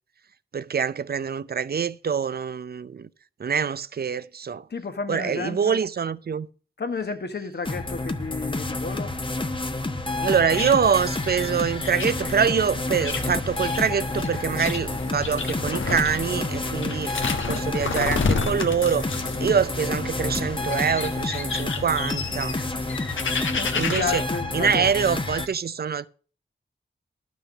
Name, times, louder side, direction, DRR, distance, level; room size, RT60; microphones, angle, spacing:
voice 1, 0.5-3.1 3.4-4.7 5.1-6.5 10.2-17.1 17.5-19.1 19.4-22.6 23.7-24.2 24.5-26.1, right 7 dB, 55° right, 0.6 m, -25 dB
voice 2, 4.7-5.8 6.8-9.1 23.5-25.2, left 5 dB, 60° left, 1.4 m, -32 dB
sound 1, 7.6-25.5, left 2 dB, 25° left, 1.1 m, -29 dB
sound 2, 10.2-24.2, left 5 dB, 85° left, 1.3 m, -32 dB
11.5 x 6.1 x 7.1 m
wide cardioid pair, 75°, 20 cm